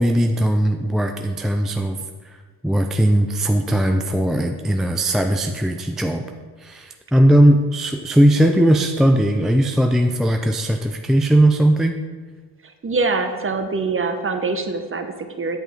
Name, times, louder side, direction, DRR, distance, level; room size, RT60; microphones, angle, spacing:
voice 1, 0.0-2.4 2.6-6.2 6.6-12.0, right 1 dB, ahead, 4 dB, 0.4 m, -18 dB
voice 2, 12.8-15.6, right 3 dB, 30° right, 6 dB, 1.0 m, -24 dB
9.2 x 5.4 x 4.3 m, 1.5 s
supercardioid pair, 70°, 42 cm